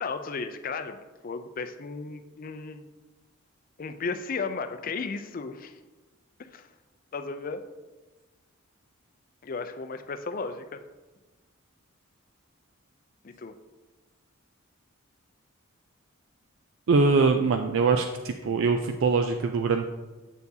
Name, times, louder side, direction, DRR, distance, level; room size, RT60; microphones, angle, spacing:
voice 1, 0.0-2.8 3.8-5.8 6.4-6.7 7.1-7.6 9.4-10.8 13.2-13.5 17.2-17.3, left 4 dB, 40° left, 9 dB, 0.4 m, -35 dB
voice 2, 16.9-19.9, right 4 dB, 60° right, 6 dB, 0.4 m, -23 dB
7.9 x 6.8 x 2.8 m, 1.2 s
head